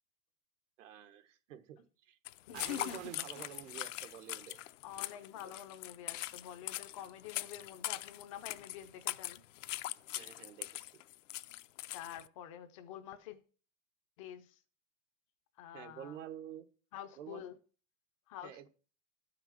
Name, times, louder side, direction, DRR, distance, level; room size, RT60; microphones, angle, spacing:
voice 1, 0.8-2.2 2.5-4.6 10.1-11.0 15.7-16.7 17.2-17.4 18.4-18.7, right 10 dB, 70° right, 1.4 m, -49 dB
sound 1, 2.3-12.3, left 16 dB, 70° left, 0.6 m, -42 dB
voice 2, 2.5-3.5 4.8-9.4 11.9-13.4 14.2-14.6 15.6-16.2 16.9-17.6 18.3-18.7, left 10 dB, 25° left, 0.5 m, -47 dB
sound 2, 2.5-4.6, right 7 dB, 20° right, 0.6 m, -55 dB
12.5 x 5.8 x 5.8 m
supercardioid pair, 165°, 39 cm